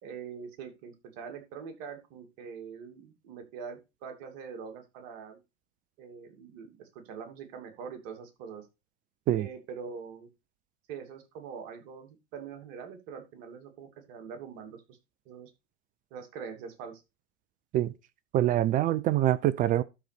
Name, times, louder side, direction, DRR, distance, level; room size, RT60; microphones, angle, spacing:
voice 1, 0.0-5.4 6.0-8.7 9.3-10.3 10.9-15.0 15.3-15.5 16.1-17.0, right 6 dB, 50° right, 2.7 m, -43 dB
voice 2, 18.3-19.8, right 13 dB, 25° right, 0.4 m, -25 dB
12.5 x 4.2 x 5.0 m
hypercardioid pair, 100°, 37 cm